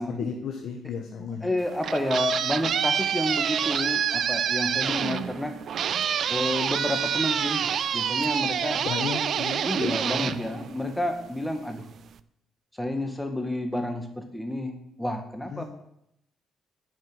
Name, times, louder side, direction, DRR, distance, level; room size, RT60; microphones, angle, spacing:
voice 1, 0.0-1.5 8.8-10.3 15.5-15.6, left 6 dB, 70° left, 2 dB, 1.1 m, -34 dB
voice 2, 1.4-5.5 6.3-7.7 7.9-8.8 9.6-11.9 12.8-15.6, left 1 dB, 5° left, 5 dB, 1.5 m, -30 dB
sound 1, 1.6-11.3, right 8 dB, 60° right, 0.4 m, -27 dB
9.1 x 5.4 x 5.5 m, 0.78 s
cardioid pair, 90°, 0 cm